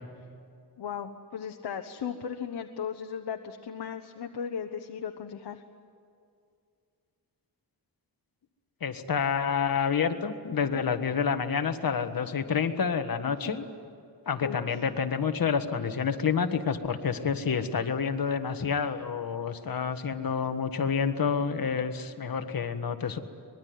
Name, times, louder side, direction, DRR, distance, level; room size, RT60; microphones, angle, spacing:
voice 1, 0.8-5.6 13.2-13.7 14.4-14.6, left 7 dB, 80° left, 5 dB, 1.2 m, -36 dB
voice 2, 8.8-13.6 14.2-23.2, left 6 dB, 55° left, 8 dB, 1.6 m, -28 dB
24.5 x 21.5 x 9.5 m, 2.4 s
wide cardioid pair, 120°, 40 cm